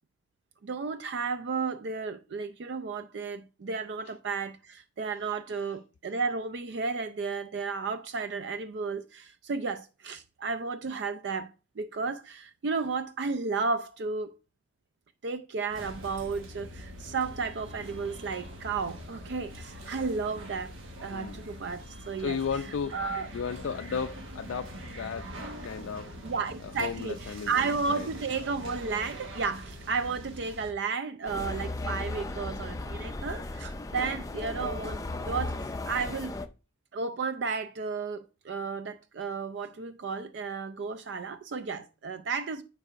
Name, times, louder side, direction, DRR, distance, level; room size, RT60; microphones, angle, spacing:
voice 1, 0.6-14.4 15.2-20.7 21.0-22.4 22.9-23.3 26.2-36.3 36.9-42.6, right 4 dB, 60° right, 0.4 m, -33 dB
sound 1, 15.7-30.7, equal, 85° right, 1.3 m, -43 dB
voice 2, 21.1-21.4 22.2-23.0 23.3-25.3 25.6-26.2 26.6-28.1, left 6 dB, 90° left, 0.4 m, -35 dB
sound 2, 31.3-36.5, left 2 dB, 15° left, 0.4 m, -36 dB
9.4 x 4.6 x 2.4 m
head